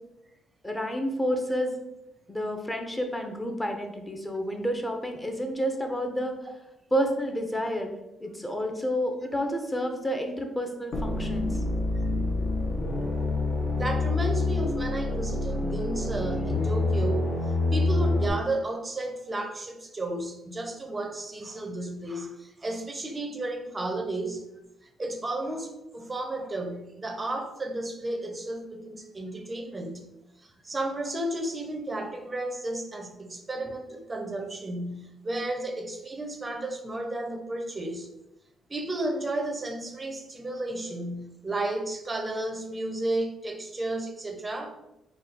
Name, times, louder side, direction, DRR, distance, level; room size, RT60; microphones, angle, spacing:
voice 1, 0.6-1.9 2.3-6.3 6.9-7.9 8.2-11.6, equal, 15° left, 4 dB, 0.7 m, -30 dB
sound 1, 10.9-18.3, left 2 dB, 55° left, 0.8 m, -27 dB
voice 2, 13.8-17.3 17.7-24.4 24.8-30.0 30.4-38.1 38.7-44.8, right 2 dB, 25° right, 5 dB, 0.6 m, -33 dB
3.9 x 2.3 x 4.0 m, 0.91 s
cardioid pair, 90°, 0 cm